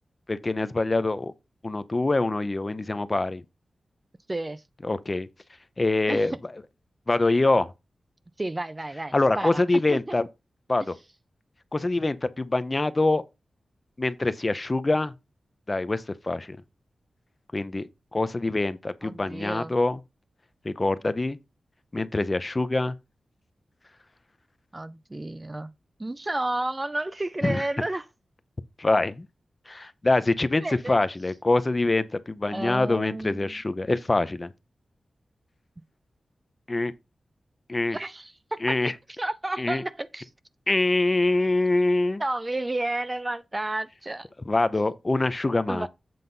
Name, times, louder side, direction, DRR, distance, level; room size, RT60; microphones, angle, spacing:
voice 1, 0.3-1.3 1.6-3.4 4.8-5.3 5.8-6.3 7.1-7.7 9.1-10.3 10.7-10.9 11.7-13.2 14.0-15.1 15.7-16.6 17.5-20.0 20.6-21.4 21.9-22.9 27.4-27.6 28.8-29.3 29.7-34.5 36.7-36.9 37.7-38.0 38.6-38.9 39.6-39.8 40.7-42.2 44.5-45.9, left 2 dB, 25° left, 0.6 m, -24 dB
voice 2, 4.3-4.6 6.1-6.3 8.4-10.2 19.0-19.7 24.7-25.7 26.0-28.1 30.6-31.0 32.5-33.6 37.9-38.6 39.2-40.3 42.2-44.3 45.7-45.9, right 2 dB, 20° right, 0.4 m, -31 dB
7.8 x 4.0 x 5.4 m
wide cardioid pair, 120°, 0 cm